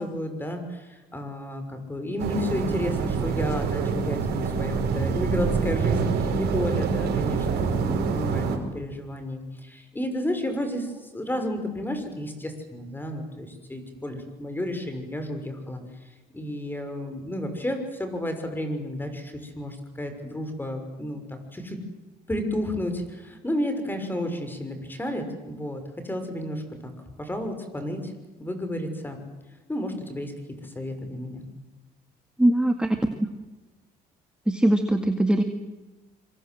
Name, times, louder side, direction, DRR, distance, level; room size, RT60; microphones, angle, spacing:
voice 1, 0.0-15.8 16.3-21.8 22.3-26.9 27.2-28.1 28.4-29.2 29.7-30.3 30.6-31.5, left 1 dB, 10° left, 7 dB, 6.1 m, -32 dB
sound 1, 2.2-8.6, right 5 dB, 75° right, 5.3 m, -26 dB
voice 2, 32.4-33.0 34.5-35.4, right 1 dB, 5° right, 6 dB, 1.9 m, -21 dB
26.0 x 25.0 x 7.9 m, 1.2 s
cardioid pair, 110°, 17 cm